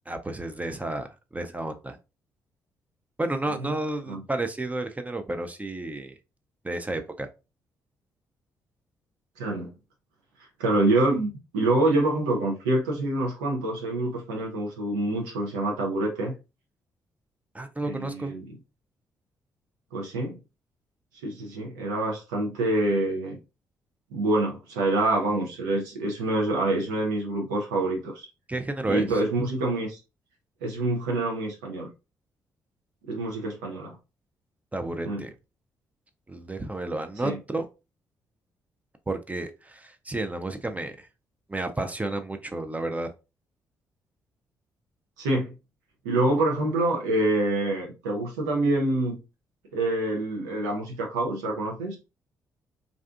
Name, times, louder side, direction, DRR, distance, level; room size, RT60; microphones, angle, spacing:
voice 1, 0.1-1.1 1.3-2.0 3.2-6.1 6.6-7.3 17.5-18.3 28.5-29.1 34.7-35.3 36.3-37.7 39.1-41.1 41.5-43.1, right 2 dB, 15° right, 0.4 m, -31 dB
voice 2, 9.4-9.7 10.6-16.3 17.9-18.4 19.9-20.4 21.2-23.4 24.1-28.3 28.9-30.0 30.6-31.9 33.1-34.0 35.1-35.2 37.2-37.4 45.2-45.5 46.0-49.2 49.7-52.0, right 2 dB, 80° right, 0.5 m, -26 dB
2.5 x 2.3 x 2.3 m
hypercardioid pair, 40°, 9 cm